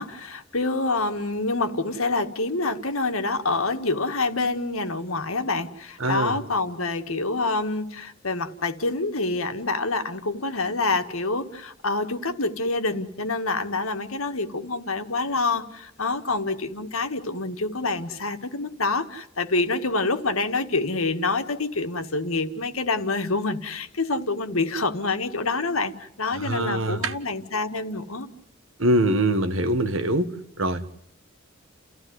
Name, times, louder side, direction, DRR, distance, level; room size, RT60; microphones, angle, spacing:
voice 1, 0.0-28.3, left 3 dB, 90° left, 1.8 m, -27 dB
voice 2, 6.0-6.4 26.3-27.1 28.8-30.3 30.6-30.9, right 1 dB, 70° right, 1.7 m, -23 dB
30.0 x 15.5 x 9.6 m
head